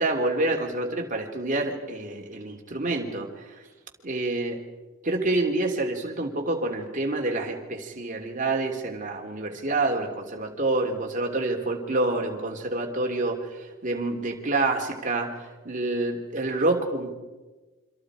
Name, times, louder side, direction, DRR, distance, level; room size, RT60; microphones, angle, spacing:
voice 1, 0.0-3.6 4.0-4.6 5.0-17.1, right 2 dB, 35° right, 2 dB, 3.0 m, -27 dB
29.0 x 26.0 x 5.0 m, 1.2 s
head